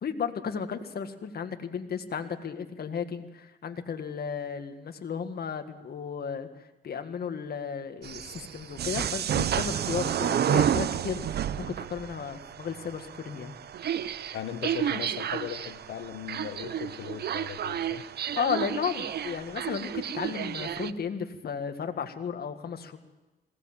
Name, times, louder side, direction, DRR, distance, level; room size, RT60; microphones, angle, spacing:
voice 1, 0.0-13.5 18.4-23.0, left 6 dB, 50° left, 7 dB, 1.9 m, -34 dB
sound 1, 8.0-20.9, right 9 dB, 55° right, 0.7 m, -31 dB
voice 2, 14.3-18.0, left 10 dB, 80° left, 10 dB, 1.4 m, -38 dB
20.5 x 17.0 x 7.5 m, 1.1 s
cardioid pair, 90°, 20 cm